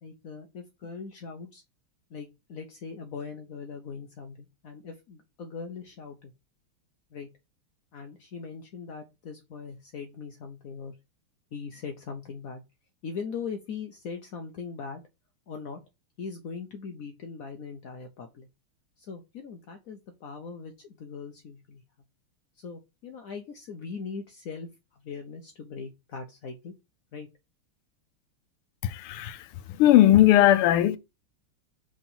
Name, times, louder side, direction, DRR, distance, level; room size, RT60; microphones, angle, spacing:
voice 1, 0.0-1.6 2.1-6.3 7.1-7.3 7.9-10.9 11.5-12.6 13.0-15.0 15.5-15.8 16.2-18.5 19.0-21.8 22.6-26.7 27.1-27.3, left 5 dB, 65° left, 0.8 m, -40 dB
voice 2, 28.8-31.0, left 13 dB, 85° left, 1.6 m, -19 dB
4.8 x 3.8 x 5.5 m
omnidirectional pair, 2.4 m